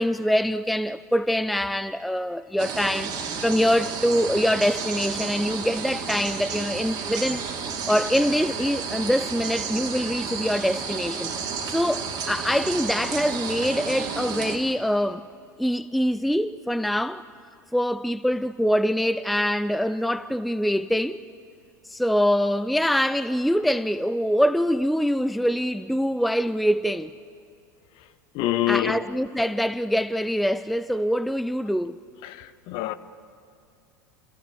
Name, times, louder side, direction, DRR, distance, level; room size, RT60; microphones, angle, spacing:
voice 1, 0.0-7.5 7.9-11.3 11.7-15.2 15.6-17.2 17.7-21.2 21.9-27.1 28.7-32.0, equal, ahead, 0.5 m, -24 dB
sound 1, 2.6-14.6, right 6 dB, 40° right, 2.7 m, -32 dB
voice 2, 28.3-29.0 32.2-32.9, left 14 dB, 50° left, 1.1 m, -26 dB
29.0 x 15.0 x 8.4 m
figure-of-eight pair, 80°, 11 cm